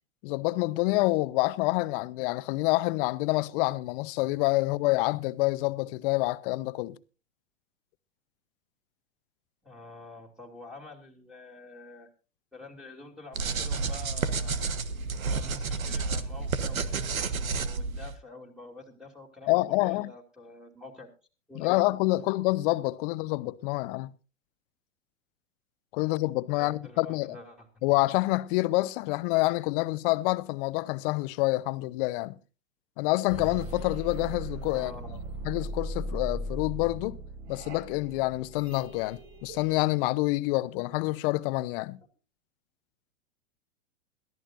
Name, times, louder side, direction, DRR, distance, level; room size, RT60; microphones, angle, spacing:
voice 1, 0.2-7.0 19.5-20.1 21.5-24.1 25.9-27.4 27.8-32.3 33.0-34.9 35.4-37.2 37.5-42.0, left 21 dB, 40° left, 0.9 m, -27 dB
voice 2, 9.6-12.1 12.5-14.6 15.1-21.1 21.5-21.8 26.5-28.0 34.7-35.2, left 3 dB, ahead, 3.0 m, -47 dB
sound 1, 13.3-18.1, right 4 dB, 85° right, 1.3 m, -30 dB
sound 2, 33.3-39.8, equal, 50° right, 6.4 m, -38 dB
22.0 x 13.5 x 2.6 m
hypercardioid pair, 110°, 40 cm